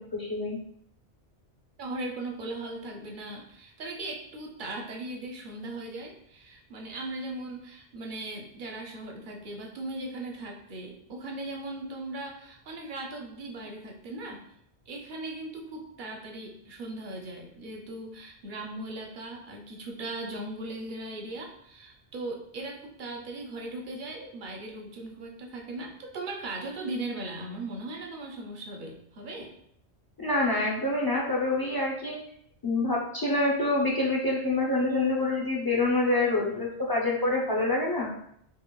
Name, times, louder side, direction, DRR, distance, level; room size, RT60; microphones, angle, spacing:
voice 1, 0.1-0.6 30.2-32.1 32.6-38.1, left 2 dB, 35° left, -3 dB, 0.3 m, -26 dB
voice 2, 1.8-14.4 14.9-29.5, right 2 dB, 55° right, 1 dB, 0.6 m, -38 dB
5.1 x 2.0 x 2.2 m, 0.70 s
omnidirectional pair, 1.1 m